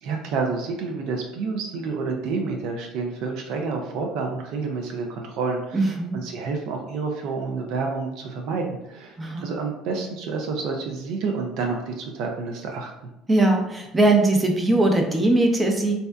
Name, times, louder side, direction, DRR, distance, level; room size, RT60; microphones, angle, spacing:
voice 1, 0.0-12.9, right 4 dB, 70° right, 2 dB, 0.4 m, -29 dB
voice 2, 5.7-6.2 9.2-9.5 13.3-15.9, right 2 dB, 20° right, 3 dB, 0.5 m, -20 dB
2.6 x 2.1 x 2.2 m, 0.85 s
hypercardioid pair, 70°, 0 cm